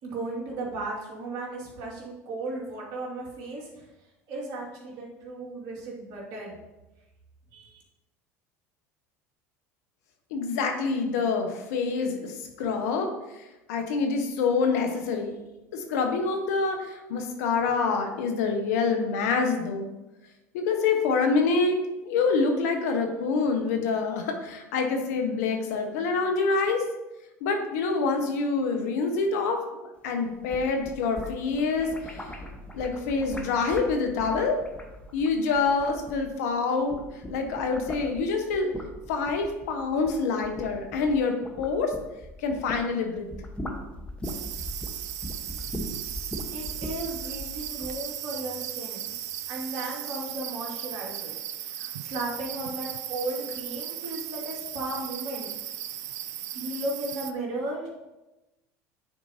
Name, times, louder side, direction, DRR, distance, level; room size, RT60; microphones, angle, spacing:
voice 1, 0.0-3.9 4.3-6.6 7.5-7.7 46.5-49.1 49.5-55.5 56.5-57.9, right 2 dB, 55° right, -4 dB, 2.4 m, -35 dB
voice 2, 10.3-13.4 13.7-15.3 15.7-19.9 20.5-21.8 22.0-26.8 27.4-32.3 32.7-34.6 35.1-37.0 37.3-38.7 39.1-41.9 42.4-43.3, left 4 dB, 75° left, 4 dB, 1.0 m, -26 dB
sound 1, 30.3-36.5 36.8-42.9 43.2-48.0, left 1 dB, 15° left, 1.1 m, -39 dB
sound 2, 44.2-57.3, right 12 dB, 80° right, 0.4 m, -36 dB
9.1 x 4.6 x 2.8 m, 1.0 s
hypercardioid pair, 80°, 9 cm